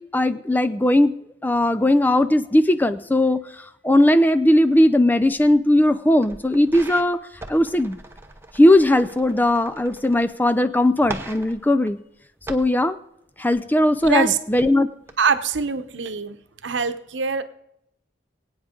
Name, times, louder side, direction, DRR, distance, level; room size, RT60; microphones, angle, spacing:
voice 1, 0.1-1.1 1.4-3.4 3.8-7.2 7.5-8.0 8.5-12.0 12.5-13.0 13.4-14.9, left 1 dB, 10° left, 12 dB, 0.4 m, -18 dB
sound 1, 5.2-5.9 6.2-10.5 10.8-12.8 13.3-14.7 15.0-15.1 15.6-15.7, right 2 dB, 15° right, 0.9 m, -40 dB
voice 2, 14.0-14.4 15.2-16.4 16.6-17.4, right 5 dB, 75° right, 10 dB, 0.9 m, -23 dB
23.5 x 8.7 x 3.7 m, 0.81 s
head